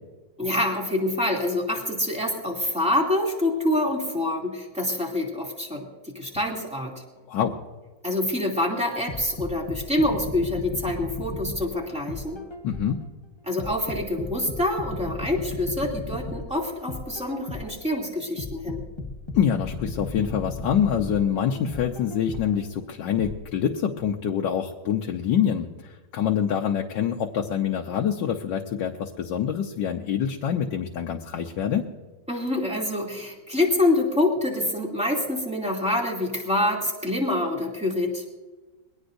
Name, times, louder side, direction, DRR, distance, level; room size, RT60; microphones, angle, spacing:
voice 1, 0.4-5.9 6.1-7.0 8.0-12.4 13.5-18.8 32.3-38.2, left 1 dB, 5° right, -1 dB, 2.6 m, -26 dB
sound 1, 9.1-13.0 13.6-17.8 18.4-22.6 23.2-23.3, left 2 dB, 20° left, 1.0 m, -35 dB
voice 2, 12.6-13.0 19.3-31.9, left 8 dB, 90° left, 1 dB, 1.5 m, -26 dB
22.0 x 18.0 x 2.6 m, 1.2 s
omnidirectional pair, 1.9 m